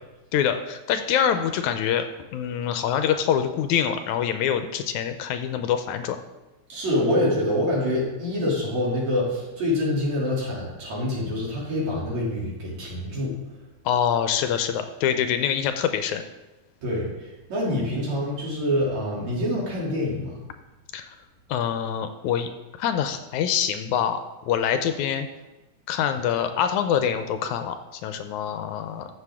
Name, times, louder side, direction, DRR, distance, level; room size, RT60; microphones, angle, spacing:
voice 1, 0.3-2.1 2.3-6.2 13.9-16.2 20.9-21.2 21.5-22.5 22.8-24.2 24.5-25.3 25.9-29.1, left 9 dB, 80° left, 8 dB, 1.9 m, -25 dB
voice 2, 6.7-13.4 16.8-20.4, left 1 dB, 65° right, -5 dB, 4.1 m, -26 dB
14.5 x 6.7 x 3.6 m, 1.1 s
omnidirectional pair, 3.5 m